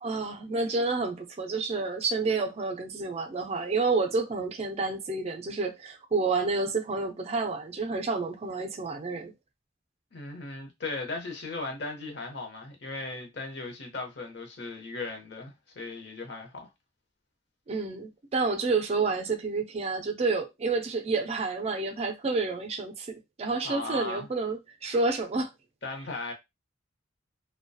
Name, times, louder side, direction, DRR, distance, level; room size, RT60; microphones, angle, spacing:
voice 1, 0.0-9.3 17.7-25.5, right 3 dB, 35° right, 0.4 m, -29 dB
voice 2, 10.1-16.7 23.6-24.3 25.8-26.3, left 2 dB, 65° left, 0.7 m, -37 dB
2.6 x 2.2 x 2.2 m
head